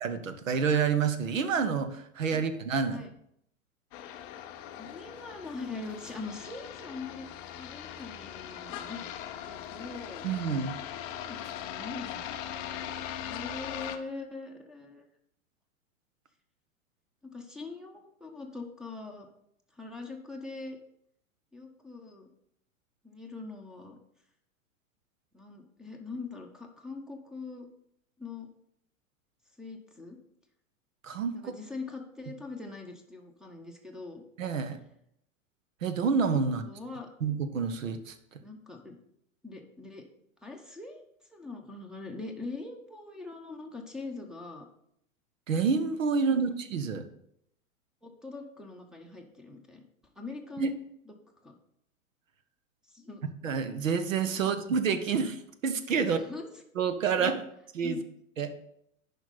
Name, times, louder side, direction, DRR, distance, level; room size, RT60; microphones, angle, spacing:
voice 1, 0.0-3.0 10.2-10.8 31.0-31.5 34.4-34.8 35.8-36.7 37.2-38.2 45.5-47.1 50.6-50.7 53.4-56.2 56.7-57.4 57.7-58.0 58.4-58.5, right 5 dB, 65° right, 10 dB, 1.0 m, -28 dB
sound 1, 3.9-14.0, left 10 dB, 25° left, 0.4 m, -40 dB
voice 2, 4.8-9.1 9.4-10.3 11.1-15.0 17.2-19.3 19.8-20.8 21.5-22.3 23.0-24.0 25.3-27.7 28.2-28.5 29.6-30.2 31.3-34.2 36.6-37.1 38.4-39.0 39.4-40.0 40.4-41.0 41.3-44.7 46.3-46.6 48.0-49.8 50.2-50.7 51.1-51.2 51.4-51.5 52.9-53.3 54.5-54.6 56.1-56.5 57.2-57.4 57.8-58.0, left 3 dB, ahead, 4 dB, 0.9 m, -42 dB
10.5 x 5.4 x 4.1 m, 0.73 s
figure-of-eight pair, 100°, 42 cm